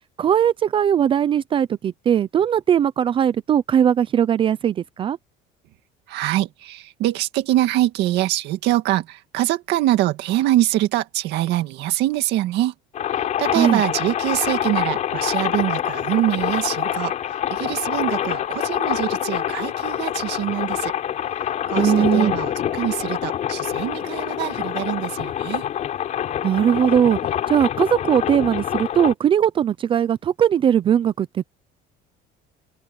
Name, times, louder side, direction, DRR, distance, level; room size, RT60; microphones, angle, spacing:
voice 1, 0.2-5.2 13.6-13.8 21.8-22.3 26.4-27.2 27.5-31.4, right 9 dB, 25° right, 0.5 m, -19 dB
voice 2, 6.1-12.7 13.1-20.9 21.7-25.7, right 15 dB, 60° right, 2.0 m, -24 dB
sound 1, 12.9-29.1, left 10 dB, 35° left, 4.5 m, -26 dB
open air
cardioid pair, 170°, 20 cm